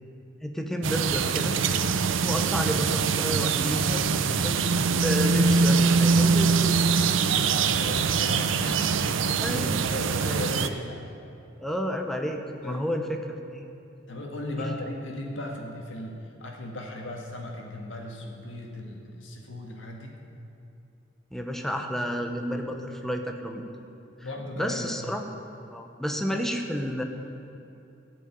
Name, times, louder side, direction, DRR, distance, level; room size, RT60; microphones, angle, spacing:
voice 1, 0.4-1.6 1.9-6.9 9.4-9.7 11.6-13.6 14.6-14.7 21.3-23.7 24.6-25.2 25.7-27.0, equal, ahead, 3 dB, 0.8 m, -31 dB
sound 1, 0.8-10.7, right 5 dB, 75° right, 0.5 m, -23 dB
voice 2, 7.3-11.2 12.6-12.8 14.1-20.2 24.2-25.0, left 1 dB, 75° left, 0 dB, 1.8 m, -37 dB
13.5 x 5.4 x 8.9 m, 2.8 s
head